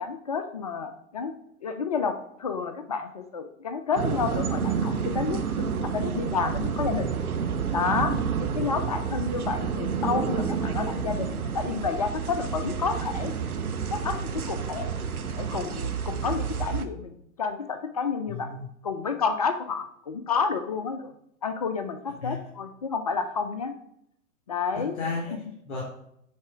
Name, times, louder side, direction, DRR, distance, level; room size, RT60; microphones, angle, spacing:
voice 1, 0.0-1.3 1.6-7.2 7.7-13.3 13.9-14.9 15.4-17.1 17.4-18.6 18.8-21.1 21.4-23.7 24.5-25.0, left 5 dB, 30° left, 9 dB, 0.4 m, -30 dB
sound 1, 4.0-16.9, right 6 dB, 80° right, 0.9 m, -29 dB
voice 2, 24.7-25.8, left 3 dB, 50° left, -5 dB, 2.8 m, -33 dB
9.4 x 4.1 x 4.8 m, 0.76 s
figure-of-eight pair, 115°, 43 cm